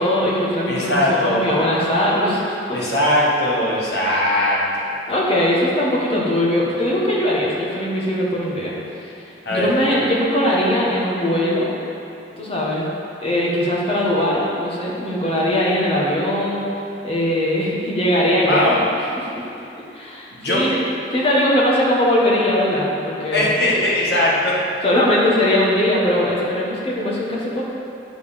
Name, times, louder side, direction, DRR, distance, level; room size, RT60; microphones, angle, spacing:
voice 1, 0.0-2.8 5.1-8.7 9.5-11.7 12.4-12.9 13.2-16.7 17.0-18.8 19.2-19.3 19.9-20.8 21.1-23.5 24.8-27.6, left 1 dB, 30° left, -5 dB, 1.4 m, -20 dB
voice 2, 0.7-1.6 2.7-4.9 9.4-9.7 18.4-18.8 20.3-20.6 23.3-24.6, left 1 dB, 60° left, -5 dB, 1.7 m, -20 dB
9.1 x 5.2 x 5.3 m, 2.7 s
head